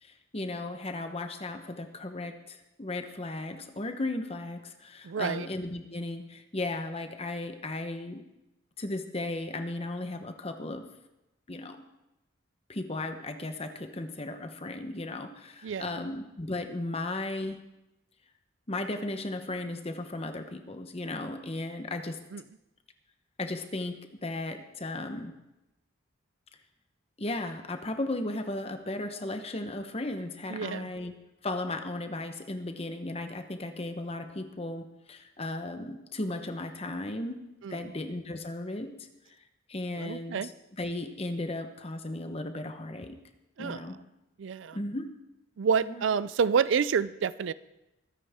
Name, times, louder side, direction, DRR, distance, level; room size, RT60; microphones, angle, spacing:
voice 1, 0.0-8.2 8.8-10.8 11.5-11.8 12.7-17.6 18.7-22.2 23.4-25.3 27.2-31.1 31.4-37.4 37.7-38.9 39.7-40.5 40.8-43.2 43.6-44.0 44.7-45.1 45.9-46.0, left 2 dB, 30° left, 7 dB, 1.0 m, -35 dB
voice 2, 5.0-5.5 15.6-16.0 22.3-22.4 30.5-30.9 37.6-37.9 40.0-40.5 43.6-43.9 44.4-44.8 45.6-47.5, right 6 dB, 70° right, 17 dB, 0.4 m, -29 dB
23.0 x 9.5 x 3.6 m, 0.96 s
head